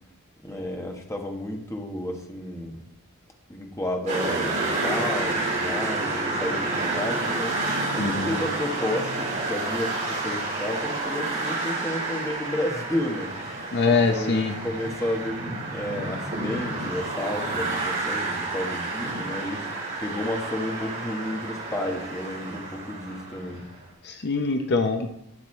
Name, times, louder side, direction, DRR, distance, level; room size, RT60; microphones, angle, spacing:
voice 1, 0.4-2.8 3.5-15.4 15.7-19.7 20.0-23.6, left 1 dB, 15° left, 2 dB, 1.2 m, -32 dB
sound 1, 4.1-23.6, right 2 dB, 35° right, 4.2 m, -30 dB
voice 2, 8.0-8.4 13.7-14.5 24.0-25.1, left 4 dB, 50° left, 5 dB, 0.6 m, -23 dB
12.0 x 8.3 x 3.2 m, 0.81 s
head